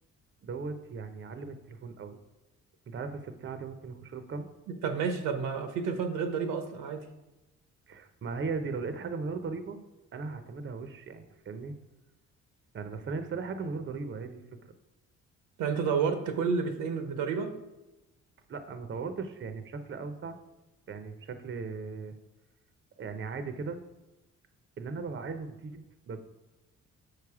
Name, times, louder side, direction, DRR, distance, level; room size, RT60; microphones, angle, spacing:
voice 1, 0.4-2.2 2.9-4.5 7.9-9.8 10.1-11.7 12.7-14.7 18.5-20.4 20.9-22.1 23.0-23.8 24.8-26.3, right 4 dB, 40° right, 8 dB, 0.7 m, -38 dB
voice 2, 4.8-7.1 15.6-17.5, right 6 dB, 80° right, 7 dB, 0.9 m, -30 dB
6.5 x 4.9 x 4.8 m, 1.0 s
cardioid pair, 90°, 30 cm